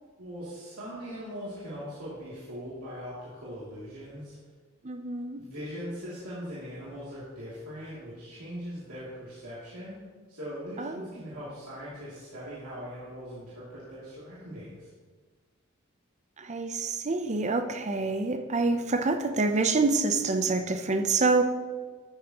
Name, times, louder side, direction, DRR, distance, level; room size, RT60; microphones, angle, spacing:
voice 1, 0.2-4.4 5.4-10.0 10.3-14.9, equal, 85° right, -10 dB, 2.8 m, -40 dB
voice 2, 4.8-5.4 10.8-11.1 16.4-21.4, right 3 dB, 35° right, 7 dB, 0.7 m, -27 dB
13.0 x 8.6 x 3.0 m, 1.5 s
head